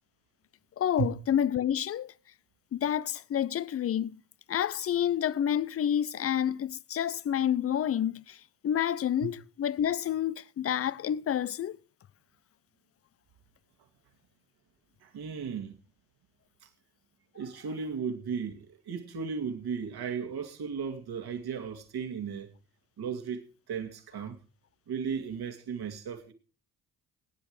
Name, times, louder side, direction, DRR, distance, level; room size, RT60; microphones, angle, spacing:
voice 1, 0.8-2.1 2.7-4.2 4.5-8.4 8.6-11.8, left 10 dB, 30° left, 0.6 m, -29 dB
voice 2, 15.0-15.8 16.6-16.7 17.3-22.5 23.0-23.4 23.7-24.4 24.9-26.3, right 6 dB, 55° right, 2.3 m, -35 dB
17.5 x 10.0 x 4.9 m
figure-of-eight pair, 40°, 47 cm